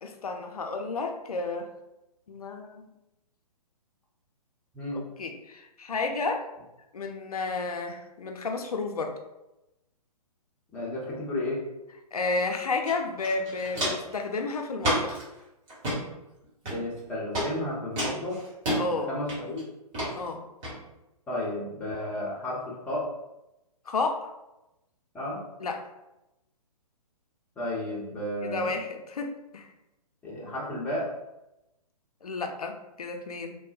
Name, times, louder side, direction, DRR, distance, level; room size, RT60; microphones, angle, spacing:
voice 1, 0.0-1.7 2.3-2.9 5.2-6.5 6.9-9.1 12.1-15.2 18.7-19.1 20.1-20.4 23.9-24.3 25.6-25.8 28.4-29.7 32.2-33.6, left 3 dB, 65° left, 4 dB, 0.5 m, -31 dB
voice 2, 10.7-11.6 16.6-18.4 18.9-19.6 21.3-23.1 25.1-25.4 27.6-28.7 30.2-31.1, left 1 dB, 5° left, -6 dB, 0.5 m, -32 dB
Walk footsteps, 12.8-12.9 13.2-14.1 14.8-15.2 15.7-16.0 16.6-17.0 17.3-17.5 18.0-18.8 19.3-19.6 19.9-20.1 20.6-20.7, equal, 25° right, 1.0 m, -29 dB
3.4 x 2.1 x 2.4 m, 0.93 s
figure-of-eight pair, 125°, 20 cm